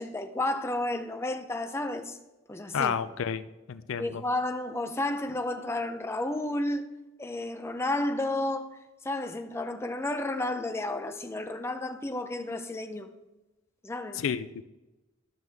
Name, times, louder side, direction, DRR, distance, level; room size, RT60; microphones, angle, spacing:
voice 1, 0.0-2.2 2.5-2.9 4.0-6.8 7.2-8.8 9.0-13.1 13.8-14.2, left 2 dB, 10° left, 0.5 m, -32 dB
voice 2, 2.7-4.2 14.1-14.6, left 7 dB, 70° left, 0.4 m, -31 dB
12.0 x 6.2 x 3.4 m
head